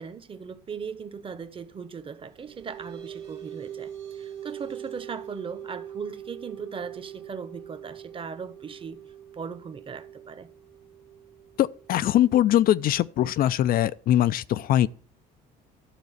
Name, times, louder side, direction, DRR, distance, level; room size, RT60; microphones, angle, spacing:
voice 1, 0.0-9.0 9.3-10.5, right 6 dB, 30° right, 1.0 m, -38 dB
sound 1, 2.1-13.1, right 10 dB, 90° right, 2.3 m, -43 dB
voice 2, 11.6-14.9, left 12 dB, 60° left, 0.4 m, -22 dB
12.0 x 4.0 x 7.9 m
cardioid pair, 110°, 17 cm